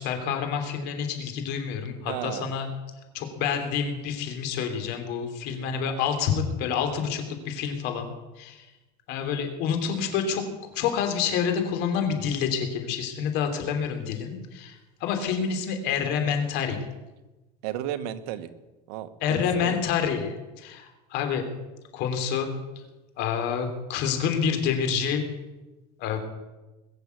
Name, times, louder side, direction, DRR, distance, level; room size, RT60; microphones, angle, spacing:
voice 1, 0.0-2.7 3.1-8.1 8.4-8.6 9.1-10.4 10.7-14.7 15.0-16.8 19.2-21.4 21.9-22.5 23.2-25.3 26.0-26.2, left 7 dB, 60° left, 5 dB, 3.3 m, -28 dB
voice 2, 2.1-2.5 5.5-5.7 17.6-18.5 18.9-19.8, right 11 dB, 85° right, 11 dB, 1.3 m, -34 dB
21.5 x 7.3 x 8.1 m, 1.1 s
cardioid pair, 140°, 20 cm